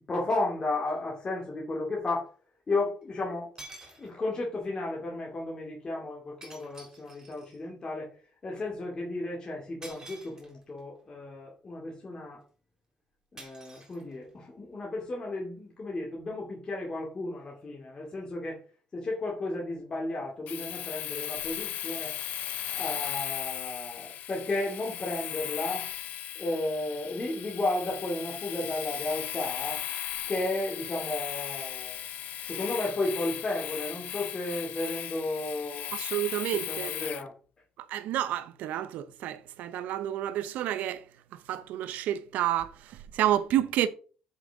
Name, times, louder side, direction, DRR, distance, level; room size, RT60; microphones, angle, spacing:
voice 1, 0.1-2.3 2.7-3.5 3.8-8.1 8.4-12.4 13.3-18.6 18.9-22.2 22.6-25.9 26.4-29.8 30.3-32.0 32.5-35.9 36.5-37.3, left 2 dB, 30° left, 2.4 m, -33 dB
sound 1, 0.9-1.0 3.0-3.1 3.6-4.4 6.4-7.6 9.8-10.8 13.4-14.5, right 2 dB, 25° right, 3.3 m, -49 dB
Domestic sounds home sounds, 20.5-37.3, left 12 dB, 70° left, 0.5 m, -37 dB
voice 2, 35.9-36.9 37.9-41.0 41.5-43.9, right 12 dB, 80° right, 0.7 m, -30 dB
7.4 x 5.7 x 3.5 m
cardioid pair, 95°, 3 cm